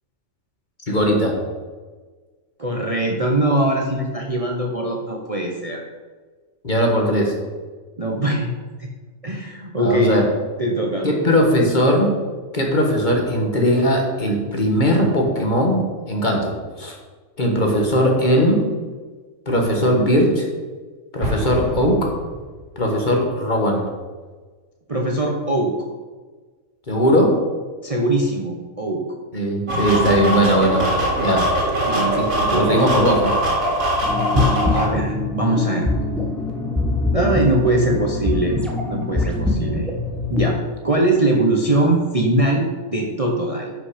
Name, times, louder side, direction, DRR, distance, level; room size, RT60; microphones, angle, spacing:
voice 1, 0.9-1.3 6.6-7.3 9.8-10.3 11.0-12.1 12.5-16.5 16.8-16.9 17.4-18.6 19.5-20.5 21.1-22.1 22.8-23.9 26.9-27.4 29.3-31.4 32.1-33.3, equal, 35° left, 1 dB, 1.6 m, -19 dB
voice 2, 2.6-5.8 8.0-8.5 8.8-8.9 9.2-10.2 10.6-11.1 24.9-25.7 27.8-29.0 31.2-31.5 31.9-32.7 34.3-35.9 37.1-38.6 38.9-39.9 40.3-40.6 40.8-43.7, right 1 dB, 30° right, 0 dB, 0.9 m, -21 dB
Explosion, 21.2-22.8, equal, 65° left, 3.1 m, -28 dB
sound 1, 29.7-34.9, right 1 dB, 75° right, 3.1 m, -21 dB
sound 2, 34.0-40.5, left 2 dB, ahead, 0.9 m, -24 dB
10.5 x 5.7 x 5.0 m, 1.4 s
omnidirectional pair, 1.4 m